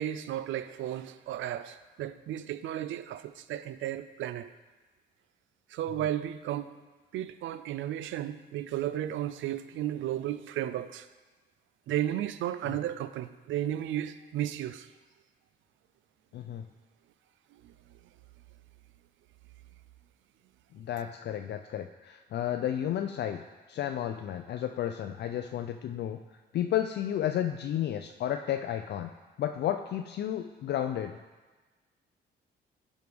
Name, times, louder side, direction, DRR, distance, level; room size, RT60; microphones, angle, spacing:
voice 1, 0.0-4.5 5.7-6.7 7.1-11.1 11.9-14.9 17.6-17.7, right 12 dB, 75° right, 13 dB, 0.4 m, -34 dB
voice 2, 16.3-16.7 20.7-26.2 26.5-29.1 29.4-31.2, left 11 dB, 60° left, 6 dB, 0.4 m, -32 dB
11.0 x 4.7 x 3.5 m, 1.3 s
cardioid pair, 90°, 20 cm